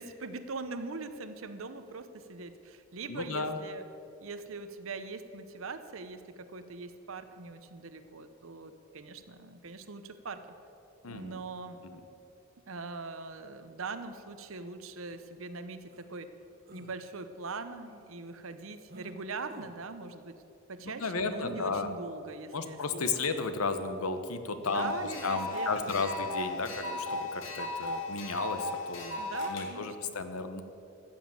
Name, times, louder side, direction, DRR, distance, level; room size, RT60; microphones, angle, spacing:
voice 1, 0.0-3.8 4.2-10.5 11.1-11.8 12.7-16.3 16.7-20.4 20.7-23.3 24.7-26.3 29.1-30.2, right 3 dB, 70° right, 10 dB, 0.8 m, -42 dB
voice 2, 3.1-3.6 11.0-11.4 20.8-21.9 22.5-24.9 25.2-29.2 29.5-30.6, left 4 dB, 85° left, 9 dB, 1.0 m, -33 dB
sound 1, 15.1-15.2 15.9-16.1 16.6-17.0 18.9-19.1 19.5-19.7 21.5-21.7, right 1 dB, 45° right, 1.2 m, -51 dB
sound 2, 24.6-29.7, left 2 dB, 60° left, 2.1 m, -36 dB
14.5 x 7.2 x 7.6 m, 2.8 s
head